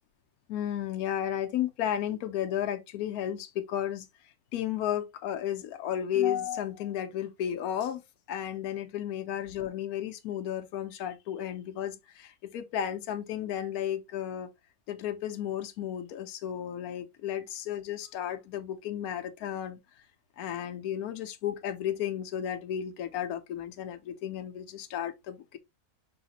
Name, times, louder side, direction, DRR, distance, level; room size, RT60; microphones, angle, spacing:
voice 1, 0.5-4.1 4.5-8.0 8.3-14.5 14.9-19.8 20.4-25.6, left 10 dB, 75° left, 1.1 m, -33 dB
4.9 x 3.0 x 2.9 m
omnidirectional pair, 1.6 m